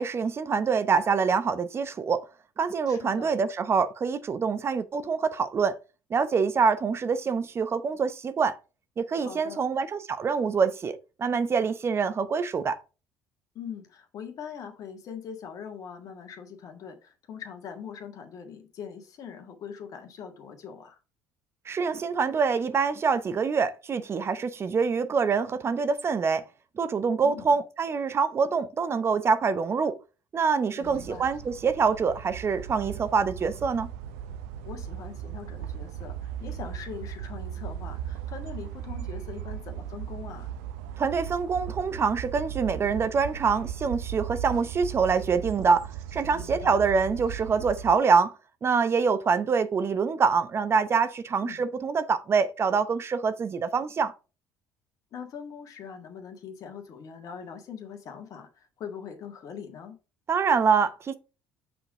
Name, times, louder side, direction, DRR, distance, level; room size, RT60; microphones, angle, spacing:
voice 1, 0.0-2.3 2.6-5.8 6.1-8.6 9.0-12.8 21.7-26.5 26.8-30.0 30.3-33.9 41.0-48.3 48.6-54.1 60.3-61.2, right 5 dB, 40° right, 0.7 m, -25 dB
voice 2, 2.9-3.3 9.2-9.6 13.5-21.0 27.2-27.5 30.8-31.2 34.6-40.5 46.3-46.8 51.4-51.6 55.1-60.0, left 7 dB, 55° left, 1.6 m, -42 dB
sound 1, 30.8-47.9, right 10 dB, 85° right, 0.6 m, -37 dB
5.8 x 3.7 x 4.8 m
supercardioid pair, 75°, 7 cm